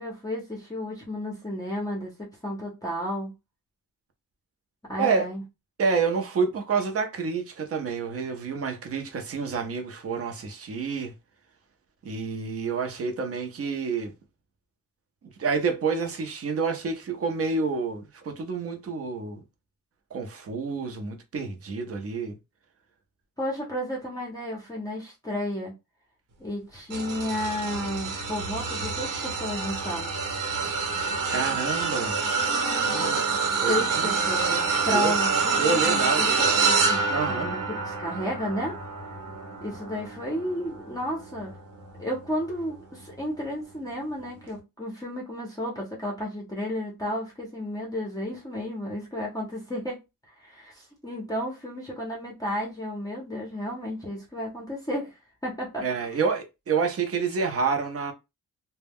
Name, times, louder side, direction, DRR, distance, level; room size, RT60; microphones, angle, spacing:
voice 1, 0.0-3.3 4.9-5.4 23.4-25.7 26.4-30.1 33.7-37.0 37.3-38.8 39.6-41.5 42.0-50.0 50.4-55.1 55.4-56.2, equal, 10° left, 0.6 m, -32 dB
voice 2, 5.8-11.1 12.0-14.1 15.4-19.4 20.1-22.4 31.3-32.2 32.8-33.2 33.5-34.1 34.9-35.1 35.6-36.3 37.1-37.5 55.8-58.1, right 5 dB, 40° right, 0.6 m, -28 dB
sound 1, 26.9-42.4 42.9-43.2 44.4-44.5, right 4 dB, 65° right, 1.1 m, -27 dB
2.2 x 2.1 x 3.4 m
wide cardioid pair, 145°, 35 cm